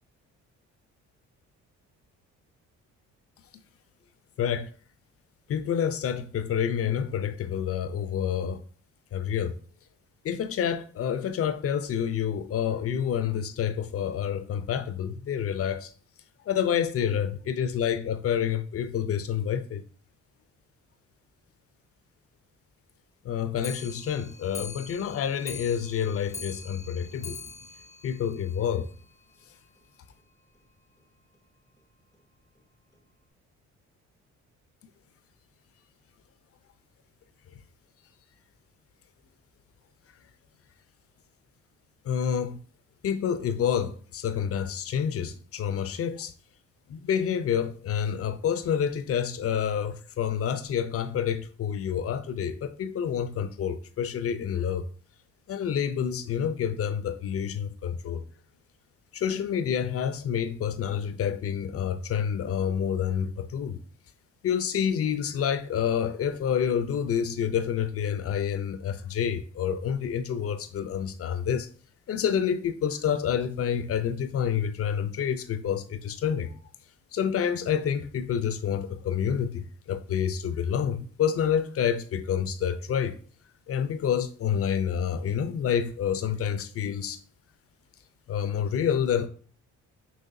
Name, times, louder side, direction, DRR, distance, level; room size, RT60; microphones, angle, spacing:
voice 1, 4.4-4.7 5.5-8.6 9.1-9.6 10.2-15.9 16.5-19.8 23.2-27.4 28.0-28.9 42.0-42.6 43.0-46.3 46.9-54.8 55.5-58.2 59.1-63.8 64.4-71.7 72.1-76.5 77.1-83.2 83.7-87.2 88.3-89.3, left 8 dB, 50° left, 0.6 m, -28 dB
Clock, 23.6-29.1 29.4-29.5 29.8-29.9 30.2-30.3 30.5-30.6 31.3-31.4 32.1-32.2 32.9-33.0, left 4 dB, 10° left, 0.7 m, -43 dB
5.6 x 3.1 x 2.6 m
cardioid pair, 90°, 30 cm